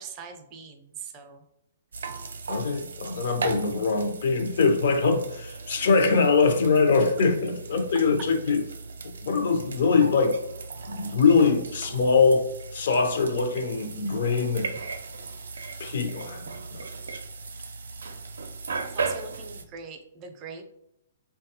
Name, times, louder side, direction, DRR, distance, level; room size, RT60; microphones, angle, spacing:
voice 1, 0.0-1.4 18.9-20.7, right 5 dB, 30° right, 5 dB, 0.4 m, -41 dB
sound 1, 1.9-19.6, right 4 dB, 85° right, 0.4 m, -37 dB
voice 2, 2.5-8.6 9.2-10.4 10.9-14.7 15.8-16.9, left 4 dB, 65° left, 6 dB, 0.5 m, -23 dB
3.3 x 2.2 x 2.8 m, 0.78 s
hypercardioid pair, 145°, 0 cm